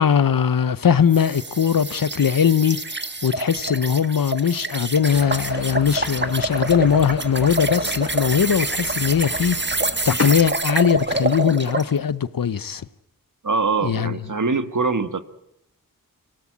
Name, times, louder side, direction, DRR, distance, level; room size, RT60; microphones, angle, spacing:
voice 1, 0.0-2.8 3.2-12.9 13.8-14.2, left 7 dB, 70° left, 0.8 m, -20 dB
sound 1, 1.1-11.9, right 2 dB, 30° right, 1.4 m, -27 dB
sound 2, 5.1-10.5, left 3 dB, 45° left, 1.6 m, -34 dB
voice 2, 13.4-15.2, right 4 dB, 55° right, 1.5 m, -23 dB
24.5 x 17.5 x 8.7 m
cardioid pair, 45°, 36 cm